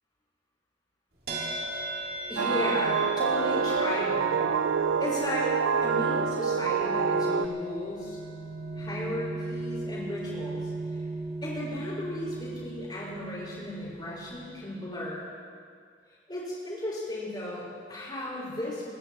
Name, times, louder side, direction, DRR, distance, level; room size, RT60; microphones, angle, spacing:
sound 1, 1.3-14.8, right 1 dB, 50° right, 2.8 m, -36 dB
voice 1, 2.3-4.4 5.0-8.2 8.8-11.0 11.4-15.3 16.3-18.9, left 1 dB, 25° left, -6 dB, 5.7 m, -35 dB
sound 2, 2.4-7.5, right 6 dB, 85° right, 0.4 m, -27 dB
24.5 x 17.5 x 3.1 m, 2.1 s
head